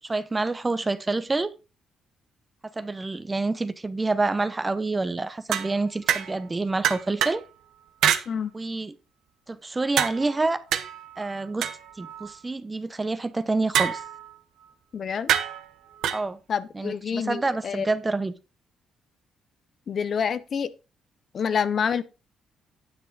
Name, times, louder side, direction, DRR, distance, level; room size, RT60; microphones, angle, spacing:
voice 1, 0.0-1.5 2.8-7.4 8.5-8.9 9.5-10.6 11.2-11.7 12.0-14.0 16.1-16.4 16.7-18.3, right 3 dB, 20° right, 0.9 m, -27 dB
sound 1, 5.5-6.5 6.8-7.4 8.0-8.2 10.0-12.4 13.7-14.4 15.3-16.2, right 10 dB, 80° right, 0.9 m, -26 dB
voice 2, 14.9-15.3 16.5-17.9 19.9-20.7 21.3-22.0, left 7 dB, 50° left, 0.7 m, -27 dB
9.6 x 7.7 x 3.9 m
cardioid pair, 90°, 0 cm